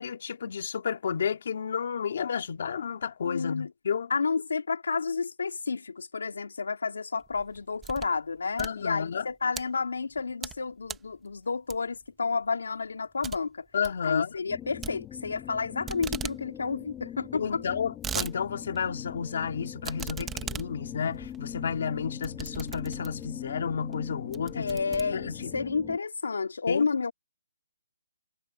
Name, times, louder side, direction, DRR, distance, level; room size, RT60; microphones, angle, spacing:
voice 1, 0.0-4.1 8.6-9.3 13.7-14.4 17.3-24.8 25.1-25.5 26.7-26.9, left 6 dB, 45° left, 2.3 m, -31 dB
voice 2, 3.2-3.7 4.1-13.6 14.0-17.6 24.5-27.1, left 4 dB, 85° left, 3.5 m, -31 dB
sound 1, 7.2-8.2 8.5-9.6 10.1-10.6 10.9-11.1 11.7-12.1 12.4-12.5 12.8-12.9 13.2-13.4 13.7-14.0 14.8-15.6 15.9-16.4 16.7-16.8 17.0-17.1 17.6-18.3 18.8-18.9 19.8-23.3 23.9-24.0 24.3-25.6, right 8 dB, 5° right, 1.0 m, -38 dB
sound 2, 14.5-26.0, left 11 dB, 10° left, 1.1 m, -42 dB
hypercardioid pair, 175°, 0 cm